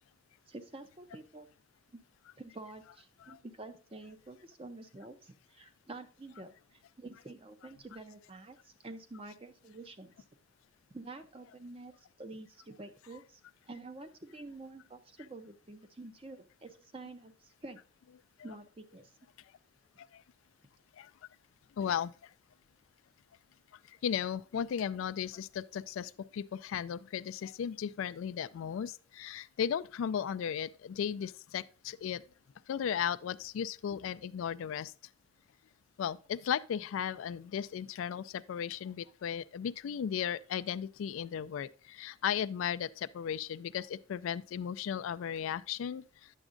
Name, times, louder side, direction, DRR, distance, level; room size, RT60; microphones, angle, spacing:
voice 1, 0.5-1.5 1.9-2.0 2.4-10.2 10.9-11.9 12.2-13.4 13.7-17.8 18.4-19.1, right 2 dB, 25° right, 0.6 m, -48 dB
voice 2, 21.8-22.3 23.9-32.2 32.7-34.9 36.0-46.4, left 8 dB, 80° left, 0.3 m, -36 dB
9.8 x 7.1 x 2.5 m
head